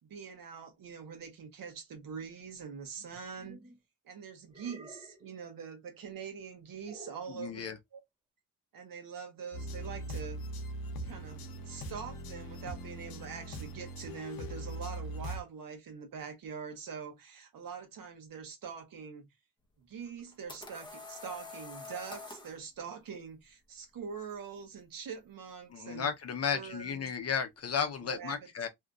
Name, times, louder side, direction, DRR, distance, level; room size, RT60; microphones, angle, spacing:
voice 1, 0.0-3.6 4.0-8.0 8.7-10.4 11.0-19.3 19.9-26.1 26.5-27.0 28.0-28.4, right 6 dB, 65° right, 1.1 m, -44 dB
sound 1, 3.0-3.8 4.5-5.4 6.8-7.4, right 2 dB, 15° right, 0.6 m, -52 dB
voice 2, 7.3-7.8 25.7-28.7, left 7 dB, 45° left, 0.7 m, -34 dB
sound 2, 9.5-15.4, right 1 dB, 75° left, 0.8 m, -41 dB
sound 3, 20.1-22.6, left 3 dB, 10° left, 0.8 m, -46 dB
2.7 x 2.5 x 2.3 m
cardioid pair, 95°, 36 cm